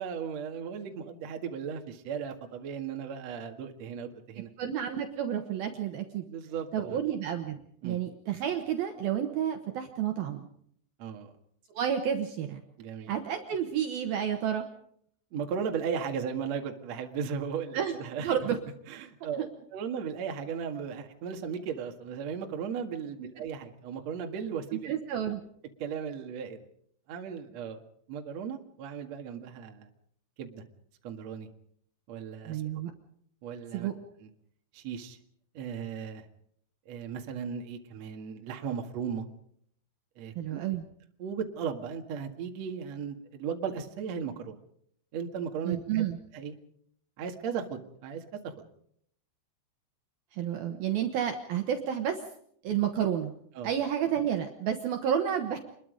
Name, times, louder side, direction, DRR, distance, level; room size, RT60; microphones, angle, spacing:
voice 1, 0.0-4.5 6.3-7.0 7.8-8.0 11.0-11.3 12.8-13.1 15.3-18.3 18.9-24.9 25.8-26.7 27.1-27.8 28.1-29.9 30.4-30.6 31.0-31.5 32.1-32.6 33.4-33.9 34.2-34.3 34.7-35.2 35.5-36.3 36.9-39.3 40.2-40.6 41.2-44.6 45.1-46.0 46.3-46.5 47.2-48.5 53.5-53.7, right 7 dB, 50° right, 4 dB, 2.3 m, -36 dB
voice 2, 4.6-6.3 6.7-10.5 11.7-12.6 13.1-14.7 17.7-17.9 18.2-18.6 19.4-19.5 24.8-25.4 32.5-32.9 33.7-33.9 40.4-40.9 45.6-46.2 50.3-52.2 52.6-53.3 53.6-55.6, right 9 dB, 65° right, 5 dB, 2.7 m, -30 dB
27.0 x 21.5 x 5.2 m, 0.67 s
omnidirectional pair, 5.4 m